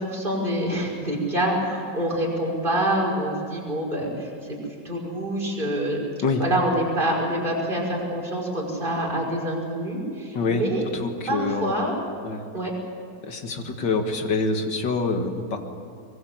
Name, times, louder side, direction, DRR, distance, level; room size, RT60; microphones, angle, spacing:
voice 1, 0.0-4.3 4.8-6.0 6.4-10.9 11.3-11.9 12.5-12.7, right 1 dB, 25° right, -1 dB, 6.0 m, -26 dB
voice 2, 10.3-10.7 10.9-11.7 12.2-12.4 13.2-15.6, left 3 dB, 75° left, 5 dB, 2.6 m, -26 dB
24.0 x 22.5 x 7.9 m, 2.3 s
omnidirectional pair, 2.0 m